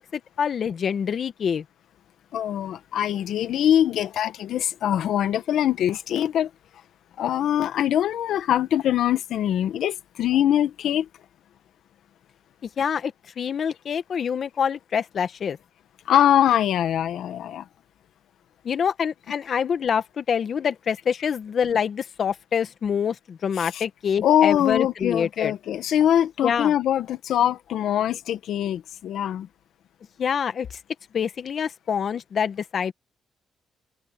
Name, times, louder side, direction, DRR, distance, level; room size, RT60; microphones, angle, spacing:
voice 1, 0.0-1.6 12.6-15.6 18.6-25.5 26.4-26.7 30.2-30.8 31.1-32.9, left 7 dB, 55° left, 1.7 m, -26 dB
voice 2, 2.3-6.5 7.2-11.1 16.1-17.6 23.6-23.8 24.2-29.5, left 10 dB, 75° left, 1.5 m, -23 dB
cardioid pair, 90°, 0 cm